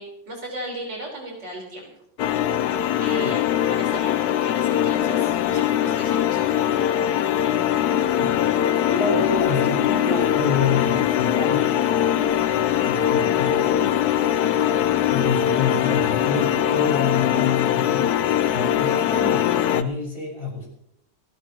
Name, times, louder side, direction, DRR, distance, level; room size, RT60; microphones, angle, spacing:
voice 1, 0.0-1.9 3.0-6.8, right 1 dB, 65° right, -1 dB, 5.5 m, -36 dB
sound 1, 2.2-19.8, left 11 dB, 65° left, 1.0 m, -21 dB
voice 2, 8.2-11.7 12.8-13.9 15.1-18.2 18.5-20.7, left 4 dB, 30° left, -2 dB, 5.9 m, -28 dB
28.5 x 11.5 x 3.1 m, 0.75 s
omnidirectional pair, 2.1 m